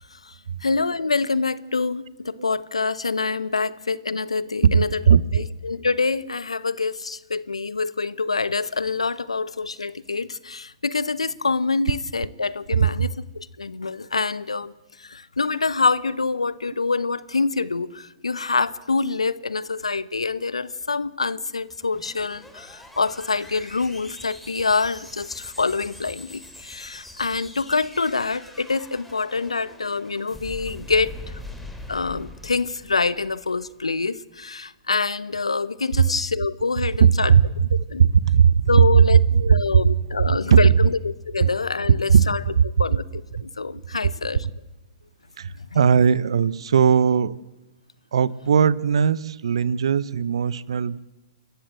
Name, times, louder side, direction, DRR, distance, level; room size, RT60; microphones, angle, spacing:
voice 1, 0.6-13.1 13.3-14.7 15.0-31.1 31.9-37.4 37.9-38.0 38.7-39.2 39.5-42.4 42.8-44.5, left 4 dB, 85° left, 1.0 m, -26 dB
voice 2, 4.7-5.4 12.8-13.1 37.0-37.7 38.0-38.6 39.0-39.1 39.3-39.6 40.2-40.6 41.4-41.5 42.1-42.2 42.6-42.7 45.4-47.4 48.1-51.0, right 7 dB, 65° right, 0.8 m, -18 dB
sound 1, 21.6-33.9, left 2 dB, ahead, 3.0 m, -42 dB
28.5 x 14.0 x 7.8 m
figure-of-eight pair, 120°, 3 cm